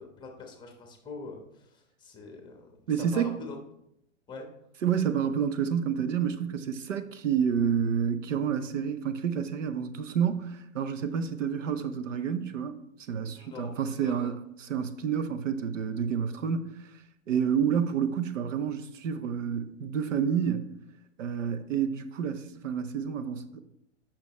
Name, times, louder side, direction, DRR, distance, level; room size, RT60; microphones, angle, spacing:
voice 1, 0.0-1.4 1.7-2.8 3.1-3.6 4.3-4.5 13.4-14.3, left 4 dB, 10° left, 1.1 m, -44 dB
voice 2, 2.9-3.4 4.8-12.8 13.1-16.7 17.3-20.7 21.2-23.6, right 7 dB, 90° right, 0.8 m, -29 dB
8.3 x 5.9 x 3.1 m
hypercardioid pair, 140°, 37 cm